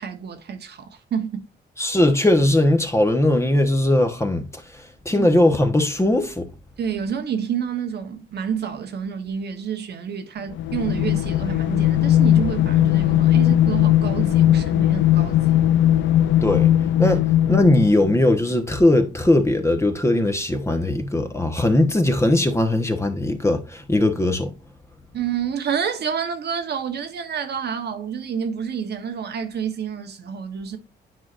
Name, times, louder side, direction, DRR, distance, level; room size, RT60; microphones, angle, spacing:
voice 1, 0.0-1.5 5.1-5.3 6.8-15.6 25.1-30.8, right 7 dB, 55° right, 1.1 m, -29 dB
voice 2, 1.8-4.6 5.0-6.5 16.4-16.7 17.0-24.5, left 1 dB, 15° left, 1.1 m, -19 dB
sound 1, 10.5-18.2, left 12 dB, 70° left, 0.4 m, -18 dB
9.6 x 4.7 x 2.5 m
cardioid pair, 90°, 20 cm